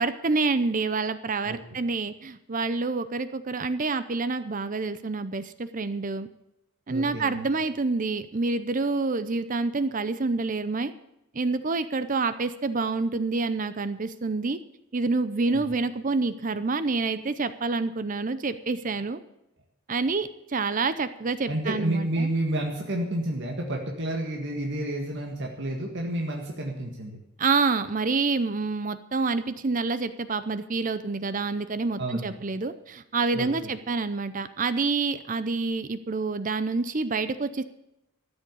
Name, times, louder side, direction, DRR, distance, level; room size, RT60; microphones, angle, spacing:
voice 1, 0.0-6.3 6.9-10.9 11.3-14.6 14.9-19.2 19.9-22.3 27.4-37.6, right 3 dB, 35° right, 13 dB, 0.6 m, -27 dB
voice 2, 6.9-7.5 15.5-15.7 21.5-27.2 32.0-32.4 33.3-33.5, right 1 dB, 55° right, 0 dB, 1.8 m, -30 dB
13.5 x 8.0 x 8.3 m, 0.86 s
head